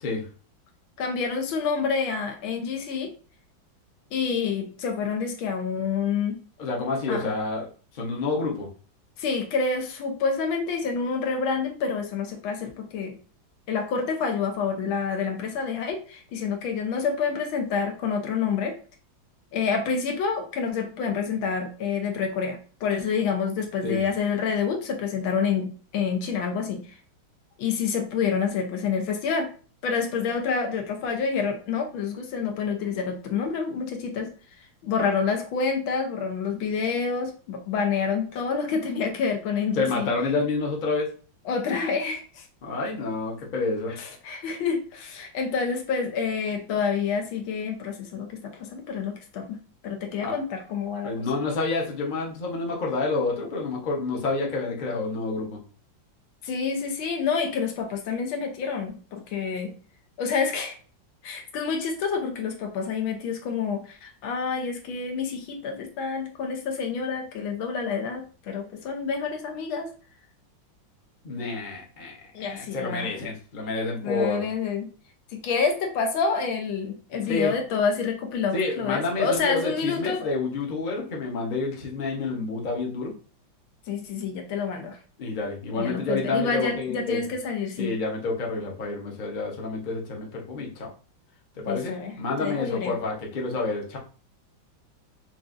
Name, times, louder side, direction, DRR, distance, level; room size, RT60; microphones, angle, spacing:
voice 1, 1.0-3.1 4.1-6.4 7.1-7.3 9.2-13.2 13.7-18.7 19.5-26.8 27.6-29.5 29.8-34.3 34.8-40.1 41.4-42.5 44.0-51.3 56.4-59.7 60.2-60.8 61.2-69.9 72.3-73.1 74.0-74.9 75.3-80.4 83.9-85.0 85.7-87.9 91.7-92.9, left 5 dB, 90° left, 3 dB, 1.6 m, -28 dB
voice 2, 6.6-7.7 7.9-8.7 23.8-24.0 39.8-41.1 42.6-44.0 50.2-50.4 51.0-55.6 71.2-72.1 72.4-74.5 77.2-77.5 78.5-83.1 85.2-87.2 87.8-90.9 91.6-94.0, left 3 dB, 40° left, -1 dB, 0.7 m, -28 dB
5.9 x 2.6 x 2.5 m, 0.39 s
omnidirectional pair, 2.1 m